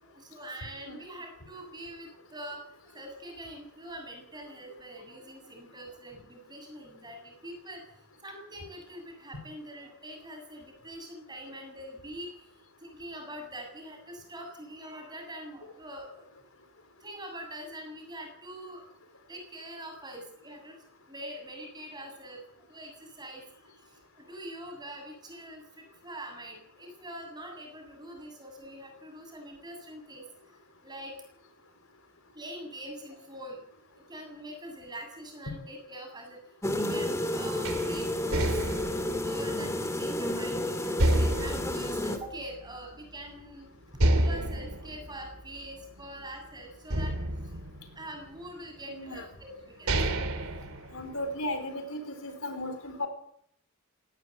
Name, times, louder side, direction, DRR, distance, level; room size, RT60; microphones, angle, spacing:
voice 1, 0.0-16.3 17.0-18.9 19.3-30.3 30.8-31.1 32.3-33.6 33.9-36.4 36.7-38.6 39.2-43.7 43.9-50.2, right 1 dB, 20° right, 3 dB, 7.4 m, -44 dB
sound 1, 36.6-42.2, left 1 dB, 15° left, 2.4 m, -31 dB
sound 2, 37.6-40.5 41.0-42.9 43.3-43.4 44.0-46.3 46.9-48.5 49.2-49.3 49.7-51.5, right 1 dB, 85° right, 2.9 m, -30 dB
voice 2, 48.9-49.2 50.9-53.1, left 1 dB, 80° left, 7 dB, 4.6 m, -35 dB
19.5 x 17.0 x 8.0 m, 0.69 s
head